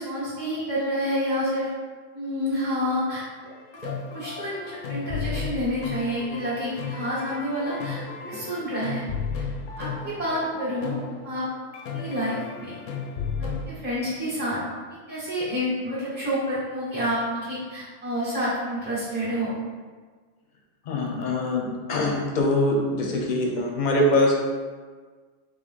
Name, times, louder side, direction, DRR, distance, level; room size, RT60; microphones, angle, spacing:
voice 1, 0.0-1.7 2.1-3.2 3.8-9.0 9.3-9.5 9.8-11.0 11.2-11.5 11.9-12.8 13.4-14.6 15.1-19.5, equal, 10° right, -11 dB, 0.9 m, -29 dB
sound 1, 3.6-13.7, left 5 dB, 75° left, 0.9 m, -34 dB
voice 2, 20.9-24.3, left 1 dB, 45° left, -1 dB, 0.7 m, -23 dB
3.4 x 3.3 x 4.1 m, 1.5 s
omnidirectional pair, 1.4 m